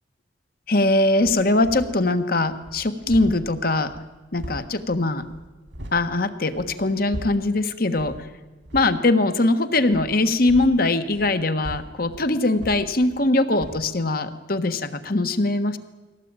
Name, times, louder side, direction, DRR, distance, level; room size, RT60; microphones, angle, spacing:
voice 1, 0.7-3.9 4.3-5.2 5.9-8.3 8.7-15.8, left 2 dB, 55° left, 10 dB, 1.5 m, -21 dB
sound 1, 1.2-2.1 2.5-6.1 6.5-7.6 7.9-8.3 8.6-9.0 9.9-13.3 13.6-13.9, equal, 80° right, 2.6 m, -39 dB
22.5 x 17.5 x 9.0 m, 1.2 s
head